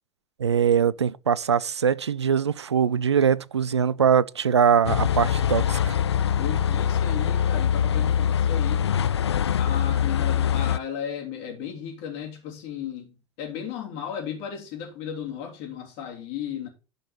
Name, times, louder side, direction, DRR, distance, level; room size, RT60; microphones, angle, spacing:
voice 1, 0.4-6.0, right 7 dB, 80° right, 0.4 m, -22 dB
sound 1, 4.8-10.8, left 9 dB, 75° left, 0.5 m, -23 dB
voice 2, 6.4-8.9 9.6-16.7, left 8 dB, 55° left, 3.1 m, -35 dB
11.5 x 5.4 x 4.2 m
figure-of-eight pair, 75°, 14 cm